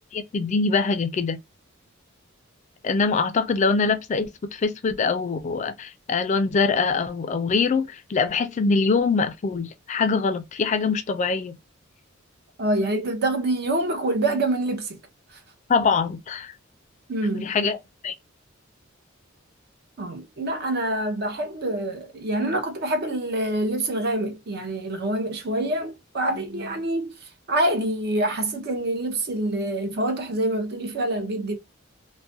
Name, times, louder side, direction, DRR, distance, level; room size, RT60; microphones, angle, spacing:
voice 1, 0.1-1.4 2.8-11.6 15.7-16.5 17.3-17.8 18.0-18.1, left 4 dB, 35° left, 0.3 m, -23 dB
voice 2, 12.6-15.0 17.1-17.5 20.0-27.1 27.5-31.6, right 1 dB, 50° right, 0.6 m, -26 dB
2.3 x 2.1 x 2.5 m
head